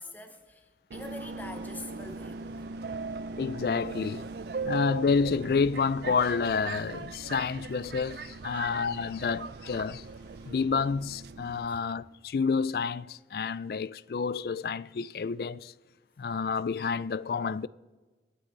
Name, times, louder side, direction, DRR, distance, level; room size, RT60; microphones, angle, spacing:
voice 1, 0.0-2.8 8.5-8.7 11.7-11.9, left 2 dB, 10° left, 0.8 m, -45 dB
Subway metro underground, 0.9-11.7, right 4 dB, 65° right, 0.4 m, -39 dB
sound 1, 1.0-10.5, right 3 dB, 25° right, 3.6 m, -61 dB
voice 2, 3.4-4.3 4.6-10.0 10.5-15.7 16.2-17.7, left 5 dB, 55° left, 0.3 m, -29 dB
26.5 x 9.4 x 4.0 m
head